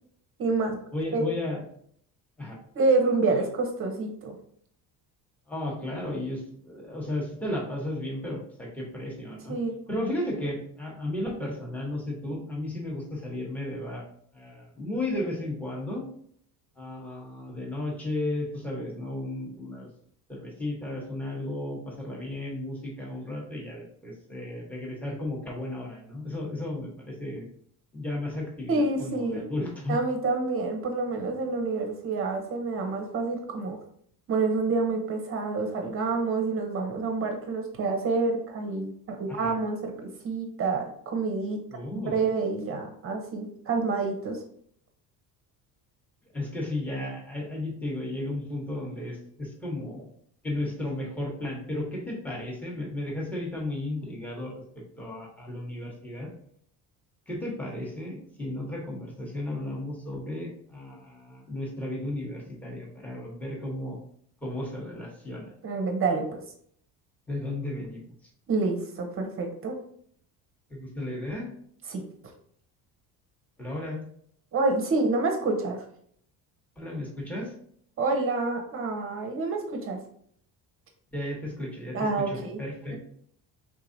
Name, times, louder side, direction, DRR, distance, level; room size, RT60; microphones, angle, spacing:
voice 1, 0.4-0.7 1.1-1.3 2.8-4.4 9.5-9.7 28.7-29.4 29.9-33.8 34.3-41.6 42.1-44.4 65.6-66.4 68.5-69.8 71.9-72.0 74.5-75.8 78.0-80.0 81.9-82.6, right 3 dB, 35° right, 3 dB, 0.7 m, -28 dB
voice 2, 0.9-1.6 2.4-2.6 5.5-9.5 9.9-14.0 14.3-16.1 16.8-19.9 20.3-27.5 27.9-30.0 39.3-39.6 41.7-42.3 46.3-50.1 50.4-56.3 57.3-64.0 64.4-65.5 67.3-68.0 70.7-71.5 73.6-74.0 76.8-77.5 81.1-83.0, left 1 dB, 5° left, -3 dB, 1.0 m, -34 dB
4.6 x 3.7 x 2.6 m, 0.63 s
cardioid pair, 160°, 37 cm